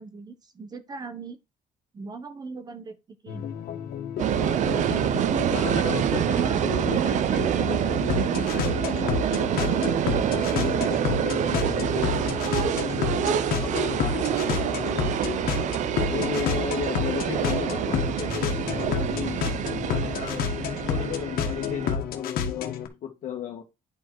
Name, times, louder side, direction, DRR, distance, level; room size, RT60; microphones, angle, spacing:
voice 1, 0.0-1.4 1.9-3.5 6.2-7.1, right 4 dB, 25° right, 1.1 m, -39 dB
sound 1, 3.3-22.9, left 7 dB, 70° left, 1.7 m, -30 dB
sound 2, 4.2-21.9, right 10 dB, 55° right, 0.7 m, -26 dB
voice 2, 5.5-10.0 10.3-13.3 13.6-15.5 16.1-19.5 19.8-23.6, left 8 dB, 55° left, 1.6 m, -35 dB
10.0 x 4.6 x 4.8 m
cardioid pair, 150°, 15 cm